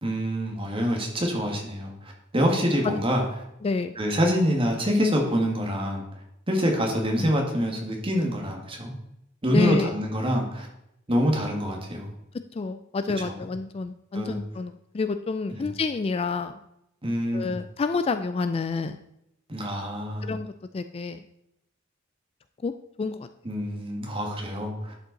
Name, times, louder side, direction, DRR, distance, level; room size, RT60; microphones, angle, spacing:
voice 1, 0.0-3.2 4.0-6.0 6.5-8.9 9.4-10.7 11.1-12.1 13.3-13.4 14.1-14.4 15.5-15.7 17.0-17.6 19.5-20.3 23.4-24.9, equal, 25° right, 1 dB, 1.8 m, -26 dB
voice 2, 3.6-4.0 7.2-7.3 9.5-9.9 12.5-16.6 17.3-19.0 20.2-21.2 22.6-22.7 23.0-23.3, left 4 dB, 30° left, 10 dB, 0.3 m, -28 dB
11.0 x 5.4 x 4.0 m, 0.82 s
head